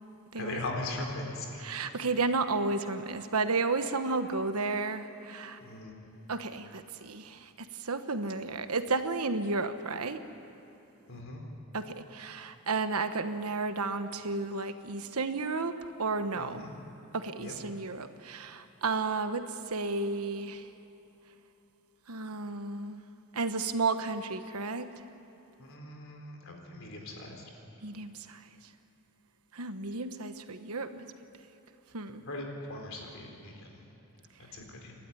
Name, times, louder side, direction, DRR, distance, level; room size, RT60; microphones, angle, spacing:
voice 1, 0.4-1.8 5.6-5.9 11.1-11.4 16.4-16.7 17.4-17.5 25.6-27.5 32.3-33.8 34.4-34.9, left 2 dB, 65° left, 1 dB, 4.0 m, -40 dB
voice 2, 1.6-5.6 6.3-10.2 11.7-15.7 16.0-16.6 17.1-20.6 22.1-23.0 23.3-24.9 27.8-28.4 29.5-31.0 31.9-32.2, right 3 dB, 80° right, 9 dB, 1.2 m, -32 dB
28.5 x 12.0 x 9.9 m, 2.9 s
head